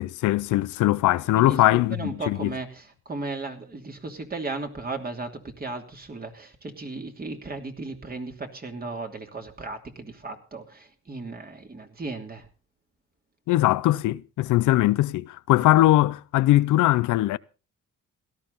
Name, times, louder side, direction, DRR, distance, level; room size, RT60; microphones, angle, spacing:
voice 1, 0.0-2.5 13.5-17.4, left 16 dB, 80° left, 0.6 m, -21 dB
voice 2, 1.3-12.4, right 3 dB, 30° right, 2.9 m, -36 dB
17.5 x 12.5 x 4.0 m
cardioid pair, 90°, 30 cm